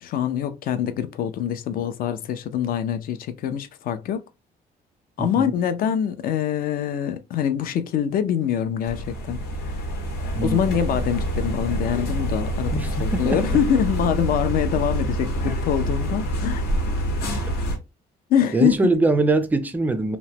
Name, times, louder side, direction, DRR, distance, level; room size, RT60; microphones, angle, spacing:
voice 1, 0.0-4.2 5.2-9.8 10.4-16.6 18.3-18.8, left 9 dB, 60° left, 0.4 m, -24 dB
voice 2, 5.2-5.5 10.4-10.8 12.7-13.6 18.5-20.2, right 2 dB, 10° right, 0.3 m, -23 dB
sound 1, 8.8-17.8, right 1 dB, 75° left, 0.9 m, -26 dB
2.9 x 2.1 x 2.7 m
cardioid pair, 155°, 17 cm